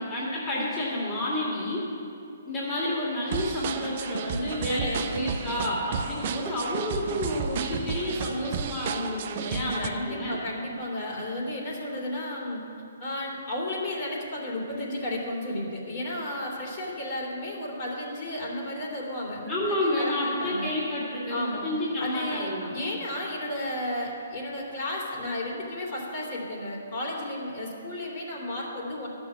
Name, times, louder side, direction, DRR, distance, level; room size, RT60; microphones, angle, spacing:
voice 1, 0.0-1.9 2.5-10.4 19.5-22.7, left 1 dB, 20° left, -7 dB, 2.2 m, -30 dB
sound 1, 3.3-9.9, right 7 dB, 45° right, 0.6 m, -33 dB
voice 2, 4.8-5.3 9.8-12.6 13.0-20.8 21.3-21.6 22.0-29.1, left 1 dB, 45° left, -3 dB, 2.9 m, -33 dB
11.5 x 6.3 x 7.3 m, 2.6 s
hypercardioid pair, 145°, 0 cm